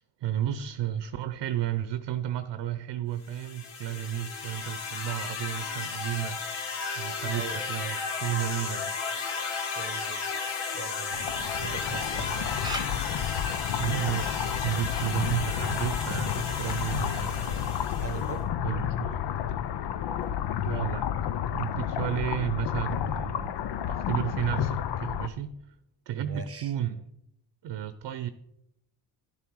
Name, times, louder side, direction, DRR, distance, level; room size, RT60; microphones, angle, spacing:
voice 1, 0.0-6.4 6.9-9.0 13.8-17.8 18.6-19.2 20.6-21.1 21.5-23.6 23.9-25.6 26.1-27.1 27.6-28.3, right 11 dB, 60° right, 12 dB, 0.8 m, -32 dB
sound 1, 3.3-18.4, left 5 dB, 75° left, 1.5 m, -34 dB
voice 2, 7.3-7.7 9.8-10.2 10.7-12.5 18.0-18.4 26.1-26.7, right 5 dB, 30° right, 8 dB, 0.8 m, -40 dB
sound 2, 11.1-25.3, left 10 dB, 55° left, 0.8 m, -31 dB
Camera, 12.6-18.0, right 1 dB, 10° right, 1.5 m, -45 dB
11.5 x 6.9 x 4.7 m, 0.81 s
supercardioid pair, 65°, 47 cm